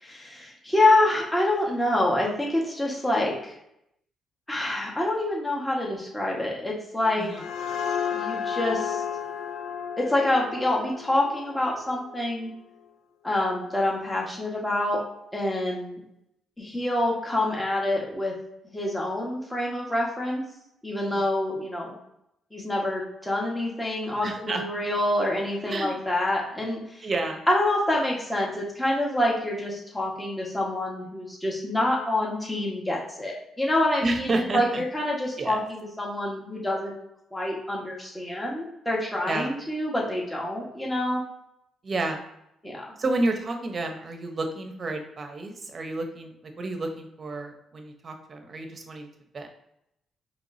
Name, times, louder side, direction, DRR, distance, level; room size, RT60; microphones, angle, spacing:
voice 1, 0.0-3.6 4.5-7.3 8.1-9.0 10.0-12.5 13.2-15.0 15.3-16.0 16.6-18.3 18.7-20.5 20.8-22.0 22.5-27.1 27.5-36.9 37.3-41.2 42.6-42.8, left 1 dB, 10° left, -3 dB, 1.5 m, -26 dB
sound 1, 7.0-12.5, left 7 dB, 75° left, 0.4 m, -33 dB
voice 2, 24.2-24.6 25.6-25.9 27.0-27.4 34.0-34.8 35.4-35.6 39.3-39.5 41.8-42.2 43.0-49.1 49.3-49.5, right 2 dB, 40° right, 4 dB, 0.9 m, -30 dB
4.7 x 3.2 x 2.7 m, 0.79 s
cardioid pair, 90°, 0 cm